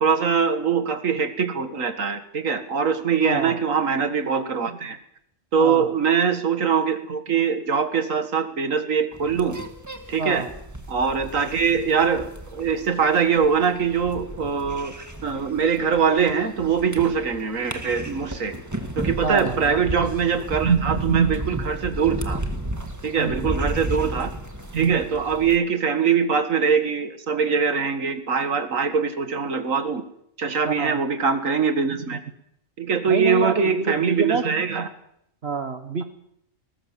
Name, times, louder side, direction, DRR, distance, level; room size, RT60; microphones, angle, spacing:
voice 1, 0.0-5.0 5.5-9.6 10.1-10.5 10.9-14.9 15.2-18.5 19.0-22.4 23.0-24.3 24.7-30.0 30.4-32.2 32.8-34.9, right 6 dB, 80° right, 9 dB, 2.1 m, -22 dB
voice 2, 3.2-3.6 5.6-5.9 10.2-10.5 19.2-19.8 23.2-23.5 30.7-31.0 33.1-34.4 35.4-36.0, right 5 dB, 55° right, 9 dB, 1.3 m, -27 dB
sound 1, 9.1-25.6, right 1 dB, 15° right, 1.9 m, -33 dB
20.0 x 19.0 x 7.5 m, 0.75 s
omnidirectional pair, 1.4 m